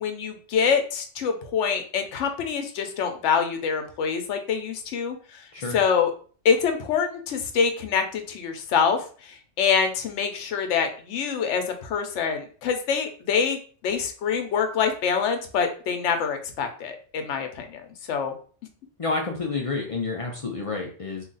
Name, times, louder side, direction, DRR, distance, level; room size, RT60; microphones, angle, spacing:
voice 1, 0.0-6.1 6.4-17.8 18.1-18.3, left 6 dB, 80° left, 6 dB, 1.0 m, -25 dB
voice 2, 19.0-21.2, left 3 dB, 55° left, 1 dB, 0.3 m, -29 dB
2.9 x 2.4 x 3.9 m, 0.42 s
omnidirectional pair, 1.2 m